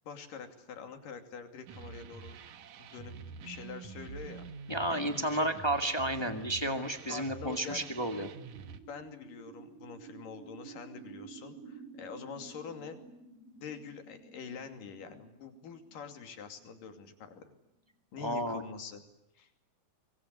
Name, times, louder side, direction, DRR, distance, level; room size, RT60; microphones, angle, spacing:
voice 1, 0.1-2.4 2.8-3.1 3.4-4.4 4.9-5.5 7.1-8.3 8.9-13.0 13.6-17.5 18.1-19.0 19.4-19.5, left 6 dB, 70° left, 7 dB, 4.2 m, -45 dB
sound 1, 1.7-8.8, right 5 dB, 60° right, 2.5 m, -47 dB
voice 2, 4.7-8.3 18.2-18.6, right 1 dB, 15° left, 6 dB, 1.1 m, -32 dB
sound 2, 6.6-18.0, right 5 dB, 20° right, 2.9 m, -53 dB
25.0 x 23.0 x 9.8 m, 0.85 s
omnidirectional pair, 4.0 m